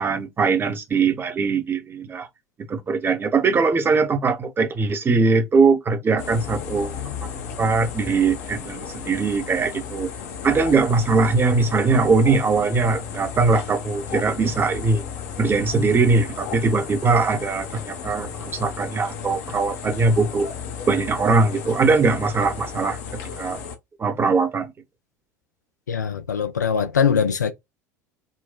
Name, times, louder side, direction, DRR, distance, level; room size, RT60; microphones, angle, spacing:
voice 1, 0.0-2.3 2.6-7.3 7.6-10.1 10.4-15.0 15.4-20.5 20.9-23.6 24.0-24.7, right 4 dB, 25° right, 0.8 m, -21 dB
sound 1, 6.2-23.8, left 7 dB, 60° left, 0.8 m, -34 dB
voice 2, 25.9-27.5, left 7 dB, 80° left, 0.4 m, -22 dB
3.9 x 2.1 x 2.2 m
figure-of-eight pair, 70°, 9 cm